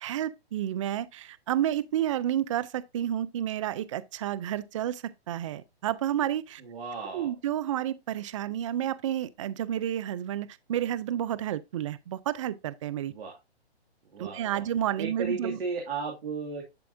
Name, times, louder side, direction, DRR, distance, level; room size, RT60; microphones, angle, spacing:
voice 1, 0.0-6.6 7.1-13.1 14.2-15.6, right 11 dB, 30° right, 0.5 m, -30 dB
voice 2, 6.6-7.3 13.1-13.4 14.1-14.7 15.0-16.6, right 4 dB, 60° right, 2.3 m, -35 dB
10.5 x 4.7 x 2.6 m
hypercardioid pair, 145°, 32 cm